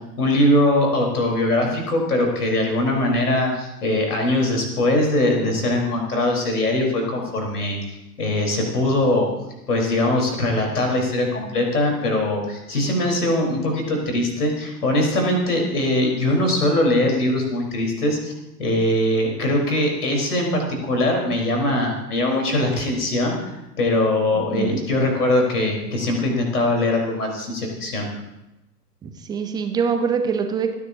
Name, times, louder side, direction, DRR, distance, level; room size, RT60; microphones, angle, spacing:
voice 1, 0.2-9.3 9.7-18.3 18.6-23.5 23.8-28.1, left 1 dB, 65° left, 1 dB, 4.4 m, -21 dB
voice 2, 24.3-24.8 29.0-30.7, right 6 dB, 10° right, 6 dB, 0.6 m, -24 dB
29.5 x 10.0 x 2.8 m, 0.93 s
figure-of-eight pair, 105°, 49 cm